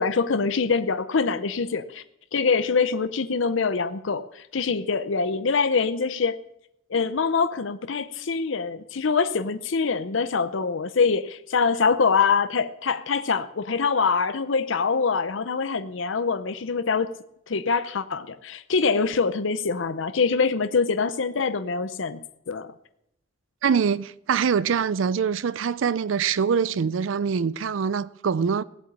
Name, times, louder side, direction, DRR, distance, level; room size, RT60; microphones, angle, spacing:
voice 1, 0.0-2.0 2.3-6.4 6.9-17.1 17.5-22.7, left 5 dB, 75° left, 0.7 m, -24 dB
voice 2, 23.6-28.6, right 6 dB, 85° right, 0.4 m, -24 dB
17.0 x 8.0 x 8.5 m
head